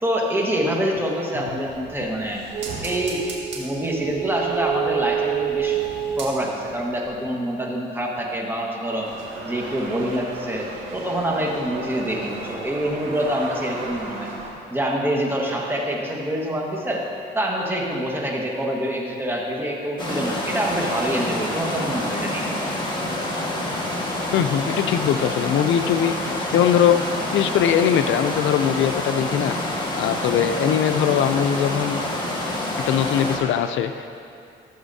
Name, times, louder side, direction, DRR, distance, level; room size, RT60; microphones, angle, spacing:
voice 1, 0.0-2.4 2.8-3.2 3.5-5.8 6.2-9.1 9.4-14.3 14.7-17.0 17.3-22.5, right 1 dB, 10° right, -2 dB, 1.5 m, -26 dB
sound 1, 1.6-6.8 7.1-7.2, right 9 dB, 65° right, 1.7 m, -28 dB
sound 2, 9.0-14.5, right 2 dB, 90° right, 1.9 m, -35 dB
sound 3, 20.0-33.4, left 1 dB, 20° left, 1.5 m, -27 dB
voice 2, 24.3-27.0 27.3-29.6 30.0-32.0 32.9-34.1, left 9 dB, 75° left, 8 dB, 0.4 m, -21 dB
15.0 x 7.0 x 2.7 m, 2.5 s
cardioid pair, 90°, 20 cm